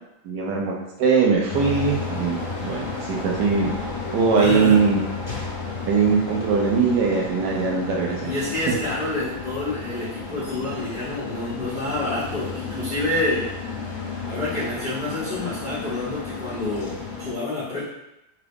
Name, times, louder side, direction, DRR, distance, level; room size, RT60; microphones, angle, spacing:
voice 1, 0.2-3.7 4.1-5.0 5.9-8.3, right 5 dB, 70° right, -2 dB, 1.1 m, -21 dB
sound 1, 1.5-17.3, left 4 dB, 45° left, 1.2 m, -33 dB
voice 2, 4.4-4.8 8.2-13.5 14.2-17.8, left 2 dB, 90° left, -10 dB, 0.4 m, -28 dB
3.7 x 2.4 x 3.4 m, 0.90 s
omnidirectional pair, 2.2 m